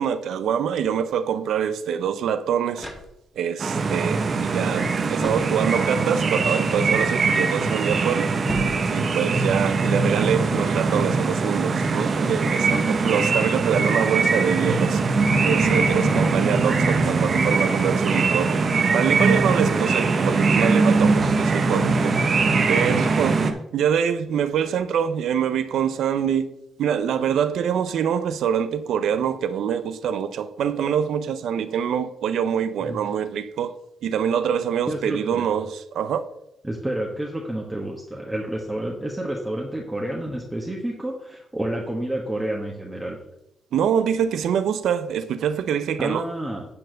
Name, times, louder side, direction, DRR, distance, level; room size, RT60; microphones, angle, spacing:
voice 1, 0.0-2.9 3.4-8.3 8.9-15.0 15.4-18.5 18.9-26.5 26.8-33.8 34.0-36.2 43.7-46.2, right 8 dB, 80° right, 0.5 m, -25 dB
sound 1, 2.7-3.6 5.2-6.1 8.4-9.4, left 1 dB, 10° left, 1.4 m, -39 dB
sound 2, 3.6-23.5, right 4 dB, 40° right, 0.8 m, -21 dB
voice 2, 16.0-16.4 19.5-20.1 32.8-33.0 34.9-35.5 36.6-43.2 46.0-46.6, right 1 dB, 10° right, 1.1 m, -30 dB
8.7 x 4.3 x 6.3 m
cardioid pair, 135°, 0 cm